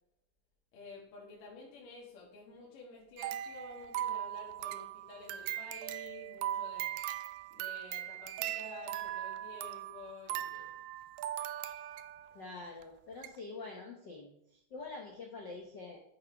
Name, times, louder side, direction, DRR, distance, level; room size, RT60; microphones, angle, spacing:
voice 1, 0.7-7.0 7.5-10.7, left 3 dB, 65° left, -4 dB, 3.6 m, -51 dB
sound 1, 3.2-12.3 12.8-12.9 13.2-13.4, right 12 dB, 80° right, 2.0 m, -39 dB
voice 2, 12.3-16.0, left 3 dB, 90° left, 0 dB, 0.9 m, -46 dB
12.5 x 6.6 x 4.8 m, 0.75 s
omnidirectional pair, 4.3 m